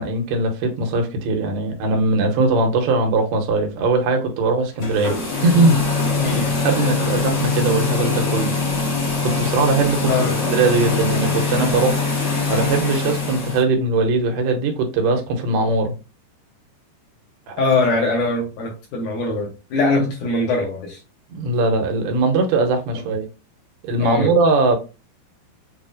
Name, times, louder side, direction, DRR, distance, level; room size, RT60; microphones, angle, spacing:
voice 1, 0.0-5.8 6.6-8.6 9.2-10.1 10.5-12.0 12.5-15.9 17.5-17.6 21.3-23.3 23.8-24.8, right 3 dB, 90° right, 2.9 m, -20 dB
sound 1, 4.7-13.6, left 3 dB, 45° left, 1.5 m, -22 dB
voice 2, 17.6-21.0 22.9-23.0 24.0-24.3, left 2 dB, 70° left, 2.0 m, -22 dB
7.0 x 2.4 x 2.4 m
omnidirectional pair, 4.4 m